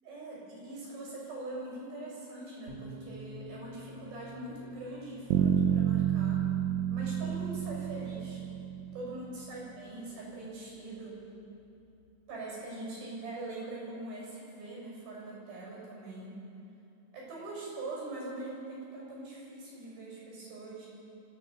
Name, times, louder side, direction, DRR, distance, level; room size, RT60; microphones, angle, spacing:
voice 1, 0.0-6.5 6.9-8.4 8.9-11.2 12.3-16.4 17.1-20.9, right 2 dB, 50° right, -4 dB, 8.7 m, -42 dB
sound 1, 2.7-12.1, left 2 dB, 30° right, 2.2 m, -53 dB
Bass guitar, 5.3-9.2, right 9 dB, 85° right, 3.2 m, -29 dB
25.5 x 16.0 x 7.2 m, 2.9 s
omnidirectional pair, 5.5 m